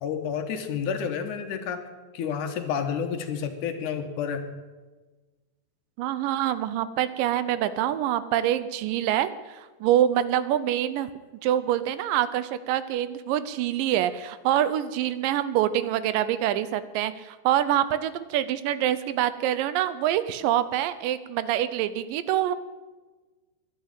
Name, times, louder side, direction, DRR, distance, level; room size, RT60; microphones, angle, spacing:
voice 1, 0.0-1.8 2.1-4.5, left 7 dB, 70° left, 7 dB, 2.4 m, -30 dB
voice 2, 6.0-11.1 11.4-22.5, right 11 dB, 80° right, 14 dB, 2.3 m, -25 dB
11.5 x 10.5 x 8.8 m, 1.3 s
omnidirectional pair, 4.0 m